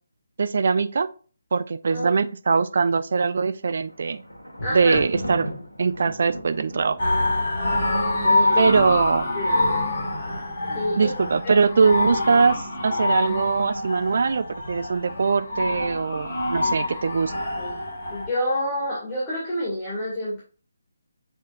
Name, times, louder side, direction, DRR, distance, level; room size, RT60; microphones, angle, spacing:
voice 1, 0.4-1.1 1.5-4.2 4.7-5.5 5.8-7.0 8.6-9.3 11.0-17.3, right 5 dB, 45° right, 13 dB, 0.5 m, -22 dB
Thunder, 3.6-8.7 9.4-9.9 10.2-10.3, equal, 80° left, 1.6 m, -36 dB
voice 2, 4.6-5.0 7.9-8.7 9.3-9.6 10.6-11.1 17.6-17.8 18.1-20.4, left 1 dB, 15° left, -7 dB, 2.3 m, -28 dB
sound 1, 7.0-18.3, left 2 dB, 40° left, 3.5 m, -25 dB
7.8 x 5.0 x 2.6 m, 0.38 s
figure-of-eight pair, 145°, 0 cm